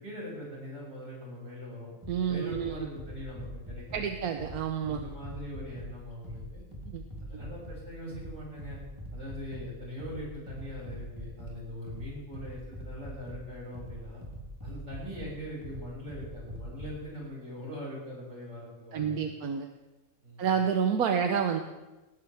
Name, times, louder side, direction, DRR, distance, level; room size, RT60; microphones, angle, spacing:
voice 1, 0.0-1.9 2.3-4.0 4.9-6.6 7.3-8.8 9.1-14.2 14.6-19.1 20.2-20.5, equal, 55° right, -5 dB, 7.0 m, -41 dB
sound 1, 2.0-17.0, equal, 20° right, 3.5 m, -44 dB
voice 2, 2.1-2.7 3.9-5.0 6.9-7.0 18.9-19.7 20.4-21.6, right 7 dB, 85° right, 5 dB, 1.4 m, -29 dB
19.0 x 18.0 x 3.5 m, 1.1 s
omnidirectional pair, 1.5 m